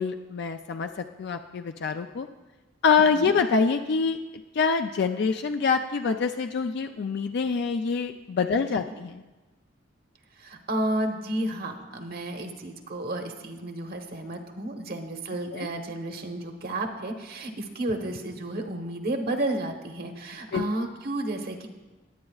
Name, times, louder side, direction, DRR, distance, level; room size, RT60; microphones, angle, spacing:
voice 1, 0.0-2.3 2.8-4.2 4.5-9.2 15.5-15.7 20.5-20.6, left 5 dB, 60° left, 7 dB, 0.4 m, -25 dB
voice 2, 8.5-9.0 10.3-21.7, right 1 dB, 55° right, 4 dB, 1.1 m, -32 dB
19.0 x 8.9 x 2.4 m, 1.2 s
head